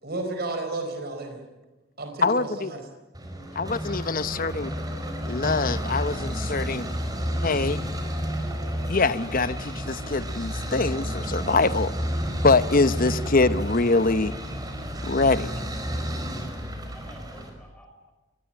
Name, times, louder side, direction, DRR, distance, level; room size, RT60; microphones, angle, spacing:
voice 1, 0.0-1.4 2.0-2.9, right 2 dB, 50° right, 5 dB, 4.5 m, -32 dB
voice 2, 2.2-2.7 3.6-4.7 5.3-6.8 7.4-7.8 8.9-11.9 12.4-14.3 15.0-15.5, left 3 dB, 45° left, 14 dB, 0.9 m, -23 dB
sound 1, 3.1-17.5, equal, 20° right, 5.1 m, -31 dB
voice 3, 16.5-18.1, equal, 5° left, 2 dB, 5.4 m, -51 dB
28.0 x 20.5 x 8.9 m, 1.1 s
head